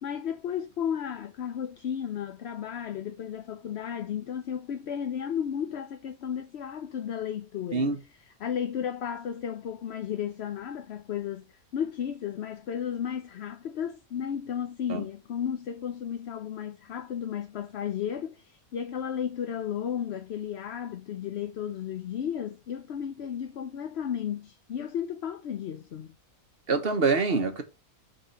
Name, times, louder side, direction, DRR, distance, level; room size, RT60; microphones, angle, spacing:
voice 1, 0.0-7.9 8.2-11.5 11.7-26.1, left 8 dB, 55° left, 0.8 m, -34 dB
voice 2, 26.7-27.6, right 4 dB, 45° right, 1.3 m, -25 dB
6.3 x 4.2 x 5.5 m
omnidirectional pair, 1.5 m